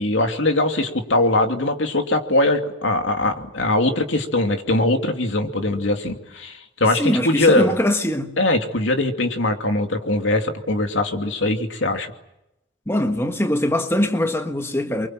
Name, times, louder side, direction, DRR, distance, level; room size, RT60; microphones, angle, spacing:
voice 1, 0.0-7.8 8.4-12.1, left 2 dB, 85° left, 2.8 m, -21 dB
voice 2, 7.0-8.4 12.9-15.1, left 1 dB, 15° left, 1.5 m, -22 dB
28.5 x 24.0 x 7.7 m
head